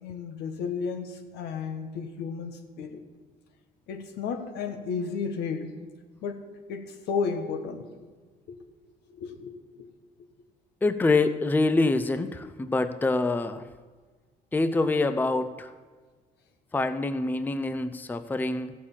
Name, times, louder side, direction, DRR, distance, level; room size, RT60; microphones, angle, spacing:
voice 1, 0.0-3.0 3.9-5.7 6.2-7.9 8.5-8.6 9.1-9.9, left 5 dB, 80° left, 7 dB, 1.4 m, -33 dB
voice 2, 10.8-13.7 14.5-15.7 16.7-18.7, left 3 dB, 10° left, 11 dB, 0.5 m, -25 dB
14.5 x 6.4 x 7.3 m, 1.4 s
cardioid pair, 110°, 17 cm